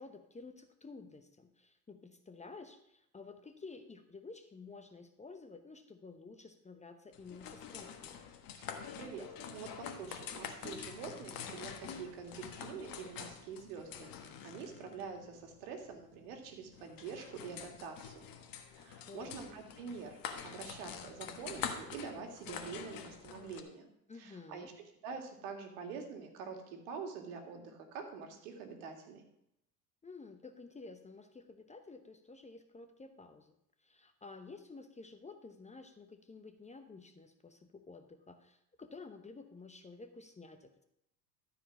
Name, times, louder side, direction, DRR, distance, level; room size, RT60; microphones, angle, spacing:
voice 1, 0.0-8.1 19.0-19.4 24.1-24.7 30.0-40.7, left 3 dB, 15° left, 7 dB, 0.9 m, -52 dB
sound 1, 7.1-23.6, left 7 dB, 45° left, 1.5 m, -46 dB
voice 2, 8.6-18.3 18.7-20.2 20.4-23.9 24.2-24.7 25.0-29.3, right 5 dB, 65° right, 4 dB, 2.2 m, -46 dB
13.0 x 5.1 x 6.1 m, 0.80 s
hypercardioid pair, 85°, 48 cm